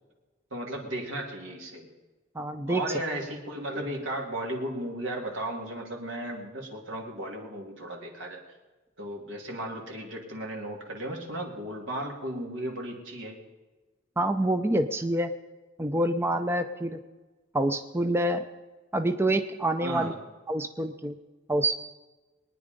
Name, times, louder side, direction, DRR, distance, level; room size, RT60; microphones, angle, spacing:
voice 1, 0.5-1.9 2.7-8.4 9.0-13.4 19.8-20.2, right 1 dB, 70° right, 0 dB, 2.9 m, -35 dB
voice 2, 2.4-2.8 14.2-15.3 15.8-17.0 17.5-18.4 18.9-20.1 20.5-21.2 21.5-21.8, right 1 dB, 10° right, 8 dB, 0.6 m, -26 dB
22.5 x 9.9 x 5.3 m, 1.2 s
head